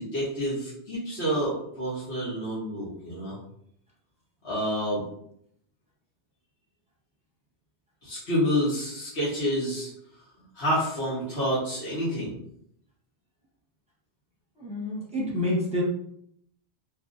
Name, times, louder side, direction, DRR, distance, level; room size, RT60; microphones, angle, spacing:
voice 1, 0.0-3.4 4.4-5.0 8.0-9.9 10.5-12.3, equal, 75° left, -10 dB, 1.4 m, -28 dB
voice 2, 14.6-15.8, left 1 dB, 5° right, -5 dB, 0.8 m, -28 dB
3.0 x 2.6 x 2.5 m, 0.71 s
omnidirectional pair, 1.1 m